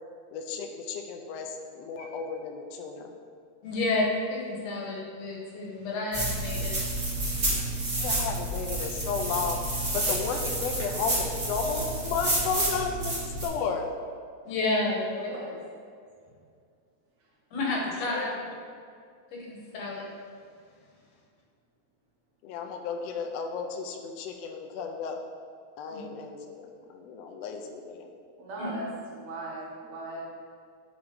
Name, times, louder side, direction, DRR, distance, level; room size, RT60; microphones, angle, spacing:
voice 1, 0.3-3.1 6.5-6.6 8.0-13.9 18.1-18.3 22.4-25.2 25.8-28.1, left 5 dB, 85° left, 3 dB, 1.4 m, -33 dB
voice 2, 3.6-6.7 14.5-15.3 17.5-18.3 19.5-20.0 25.9-26.0 28.6-28.7, left 2 dB, 65° left, -3 dB, 2.1 m, -30 dB
sound 1, 6.1-13.5, right 1 dB, 35° right, 1.7 m, -30 dB
voice 3, 15.1-15.6 28.4-30.3, right 1 dB, 75° right, -4 dB, 2.2 m, -38 dB
5.5 x 4.7 x 5.0 m, 2.2 s
omnidirectional pair, 3.4 m